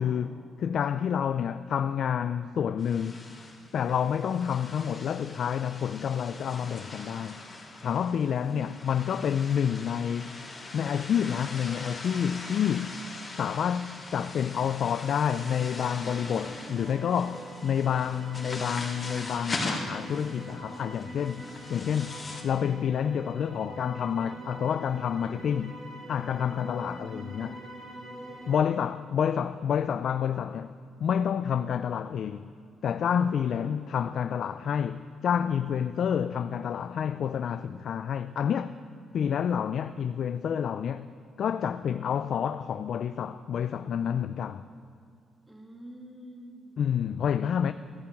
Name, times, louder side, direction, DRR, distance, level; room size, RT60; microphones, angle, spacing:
voice 1, 0.0-3.2 3.7-7.4 7.8-10.4 10.7-13.0 13.3-22.2 22.4-25.8 26.1-27.6 28.5-30.7 31.0-32.5 32.8-38.7 39.1-41.1 41.4-44.6 46.8-47.7, left 8 dB, 60° left, 0.5 m, -29 dB
sound 1, 2.8-22.4, left 2 dB, 25° left, 3.4 m, -41 dB
voice 2, 8.4-8.9 26.8-26.9 45.4-46.8, right 1 dB, 15° right, 2.9 m, -47 dB
sound 2, 15.4-28.6, right 1 dB, 35° right, 4.6 m, -44 dB
14.5 x 10.5 x 8.6 m
cardioid pair, 90°, 0 cm